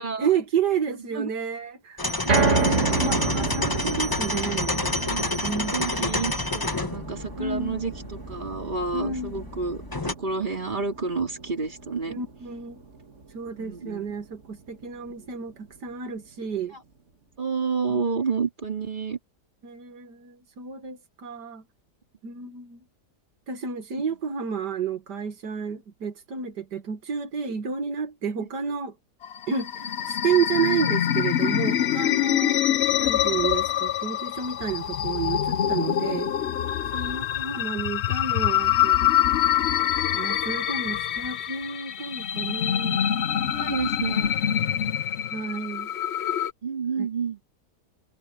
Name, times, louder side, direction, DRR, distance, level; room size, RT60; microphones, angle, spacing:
voice 1, 0.2-2.0 2.3-4.8 5.4-5.7 7.4-7.8 8.9-9.4 12.1-12.8 13.3-16.7 17.9-18.0 19.6-21.6 22.2-22.8 23.5-29.0 29.5-32.6 33.0-36.3 36.9-39.4 40.1-43.1 44.6-44.8 45.3-45.9 47.0-47.1, right 6 dB, 90° right, 2.3 m, -30 dB
sound 1, 2.0-10.1, left 2 dB, 15° left, 1.1 m, -29 dB
sound 2, 2.3-14.5 14.9-15.0 15.5-15.6, right 4 dB, 45° right, 2.4 m, -30 dB
voice 2, 5.1-12.2 13.6-14.0 15.2-15.3 17.4-19.2 22.3-22.5 30.5-30.8 32.4-32.6 43.5-44.3 46.6-47.4, right 5 dB, 30° right, 3.0 m, -30 dB
sound 3, 29.2-46.5, left 10 dB, 60° left, 0.7 m, -25 dB
omnidirectional pair, 1.8 m